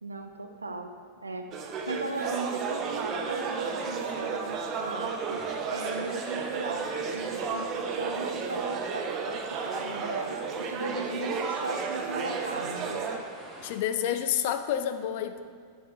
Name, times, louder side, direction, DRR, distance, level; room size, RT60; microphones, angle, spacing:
voice 1, 0.0-1.5 1.9-5.4 5.7-10.4 10.7-13.1, right 3 dB, 80° right, 6 dB, 0.5 m, -37 dB
sound 1, 1.5-13.2, right 5 dB, 35° right, 0.6 m, -33 dB
sound 2, 2.8-13.7, right 1 dB, 15° right, 1.2 m, -49 dB
voice 2, 13.6-15.4, left 10 dB, 50° left, 9 dB, 0.4 m, -29 dB
6.9 x 6.3 x 3.0 m, 2.1 s
figure-of-eight pair, 90°, 0 cm